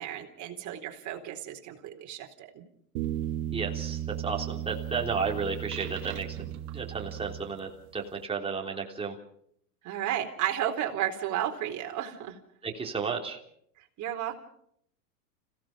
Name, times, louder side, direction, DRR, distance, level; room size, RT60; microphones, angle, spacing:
voice 1, 0.0-2.6 9.8-12.4 13.8-14.4, right 11 dB, 40° right, 2 dB, 4.1 m, -33 dB
sound 1, 3.0-7.9, right 11 dB, 65° right, 1.8 m, -35 dB
voice 2, 3.5-6.4 6.7-9.2 12.6-13.4, right 5 dB, 10° right, 0 dB, 3.4 m, -33 dB
30.0 x 17.0 x 5.1 m, 0.68 s
hypercardioid pair, 115°, 47 cm